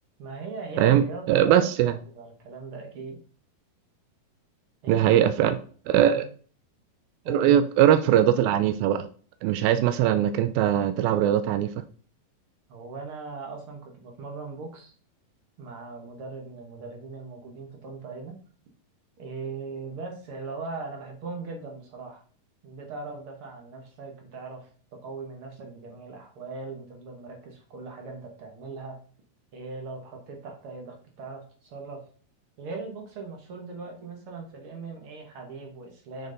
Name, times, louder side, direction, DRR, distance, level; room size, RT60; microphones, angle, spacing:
voice 1, 0.2-3.2 4.8-5.2 6.0-6.2 7.2-7.5 12.7-14.9 15.6-18.4 19.2-22.2 22.6-29.0 29.5-32.0 32.6-36.3, right 4 dB, 65° right, 2 dB, 1.4 m, -39 dB
voice 2, 0.8-1.9 4.9-5.6 5.9-6.2 7.3-9.1 9.4-11.7, right 11 dB, 85° right, 11 dB, 2.4 m, -21 dB
6.4 x 6.2 x 3.9 m, 0.43 s
omnidirectional pair, 4.1 m